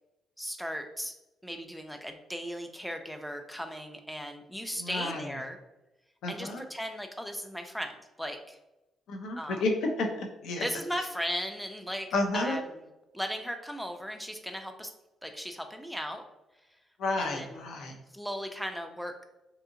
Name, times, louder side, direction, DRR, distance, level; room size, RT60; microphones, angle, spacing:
voice 1, 0.4-1.1 1.4-5.6 6.3-8.6 9.4-9.6 10.5-12.8 13.1-14.9 15.2-16.2 17.2-17.6 18.1-19.2, equal, ahead, 5 dB, 0.4 m, -37 dB
voice 2, 4.7-5.4 6.2-6.6 9.1-10.7 12.1-12.6 17.0-18.0, left 2 dB, 80° left, 2 dB, 0.5 m, -31 dB
2.7 x 2.7 x 2.5 m, 0.97 s
cardioid pair, 90°, 0 cm